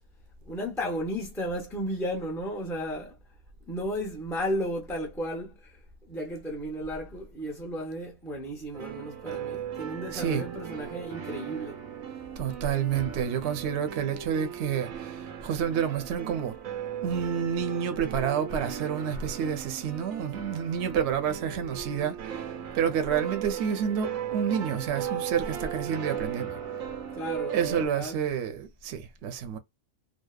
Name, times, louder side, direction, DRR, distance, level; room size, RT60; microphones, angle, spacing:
voice 1, 0.5-3.2 3.7-5.8 6.1-11.8 27.1-28.2, equal, 5° left, 0.3 m, -34 dB
sound 1, 8.7-27.9, right 8 dB, 90° right, 1.1 m, -37 dB
voice 2, 10.1-10.5 12.4-16.6 17.0-22.5 22.7-26.6 27.5-29.6, right 8 dB, 65° right, 0.8 m, -29 dB
2.8 x 2.0 x 2.3 m
omnidirectional pair, 1.4 m